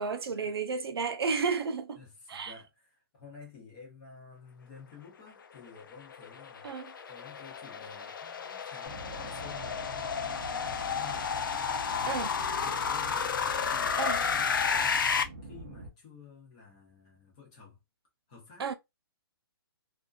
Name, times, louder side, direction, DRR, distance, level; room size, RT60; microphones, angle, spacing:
voice 1, 0.0-2.0 2.3-2.5 6.6-6.9 12.0-12.3 14.0-14.2 18.6-18.7, right 5 dB, 75° right, 0.5 m, -32 dB
voice 2, 1.9-6.7 7.1-11.4 11.8-13.3 13.7-15.1 15.4-17.8 18.3-18.7, left 5 dB, 15° left, 0.7 m, -52 dB
sound 1, 5.7-15.2, left 6 dB, 55° left, 0.4 m, -32 dB
sound 2, 8.8-15.9, right 2 dB, 30° right, 0.5 m, -45 dB
2.5 x 2.1 x 2.3 m
hypercardioid pair, 175°, 13 cm